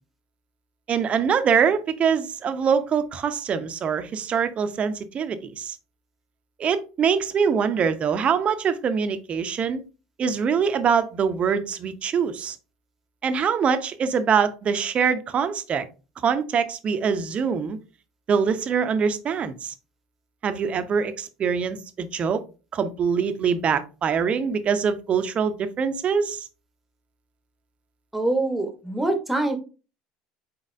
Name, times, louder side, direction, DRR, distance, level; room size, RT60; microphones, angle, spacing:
voice 1, 0.9-5.8 6.6-9.8 10.2-12.6 13.2-15.8 16.2-17.8 18.3-19.7 20.4-22.4 22.7-26.5, right 6 dB, 40° right, 0.7 m, -24 dB
voice 2, 28.1-29.6, right 2 dB, 5° right, 1.1 m, -24 dB
4.2 x 4.1 x 2.6 m
supercardioid pair, 90°, 3 cm